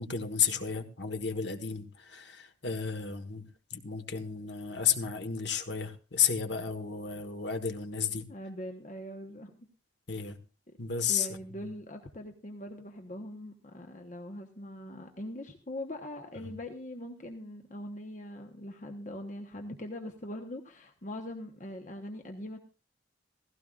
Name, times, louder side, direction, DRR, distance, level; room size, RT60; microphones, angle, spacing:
voice 1, 0.0-3.4 3.7-8.3 10.1-10.4 10.8-11.3 11.6-11.7 16.4-16.5, left 7 dB, 65° left, 1.5 m, -32 dB
voice 2, 8.3-9.7 10.7-10.8 11.1-22.6, left 1 dB, 40° left, 1.1 m, -42 dB
16.0 x 16.0 x 2.5 m
head